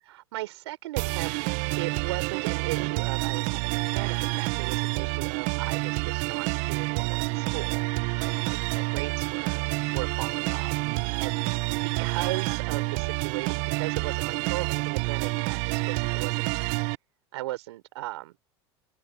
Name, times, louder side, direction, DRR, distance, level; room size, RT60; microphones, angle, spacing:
voice 1, 0.1-1.4 1.8-7.8 8.2-11.4 11.8-16.5 17.3-18.4, right 17 dB, 75° right, 4.6 m, -37 dB
sound 1, 1.0-16.9, right 26 dB, 60° right, 0.9 m, -28 dB
hypercardioid pair, 90°, 14 cm